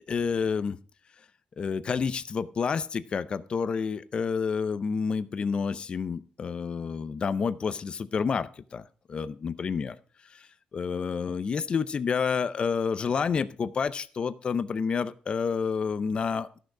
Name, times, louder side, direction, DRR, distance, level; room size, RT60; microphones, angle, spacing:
voice 1, 0.1-0.8 1.6-8.8 9.1-10.0 10.7-16.5, left 5 dB, 35° left, 14 dB, 0.6 m, -29 dB
14.0 x 6.5 x 4.8 m, 0.41 s
cardioid pair, 160°, 3 cm